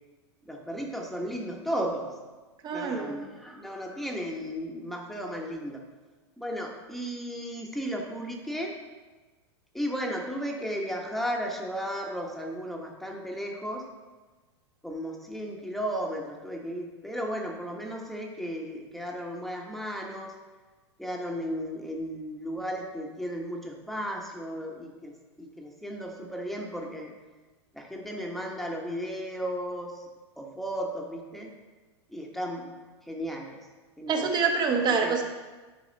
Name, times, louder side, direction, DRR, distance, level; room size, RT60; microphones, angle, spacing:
voice 1, 0.4-2.1 2.7-5.8 6.4-8.7 9.7-13.9 14.8-20.4 21.0-27.1 27.7-30.1 30.4-31.5 32.1-32.8 33.1-33.6 34.0-34.3 35.0-35.2, equal, ahead, 0 dB, 1.2 m, -34 dB
voice 2, 2.6-3.3 34.1-35.2, right 5 dB, 30° right, 4 dB, 1.2 m, -26 dB
11.0 x 4.7 x 4.1 m, 1.3 s
hypercardioid pair, 110°, 15 cm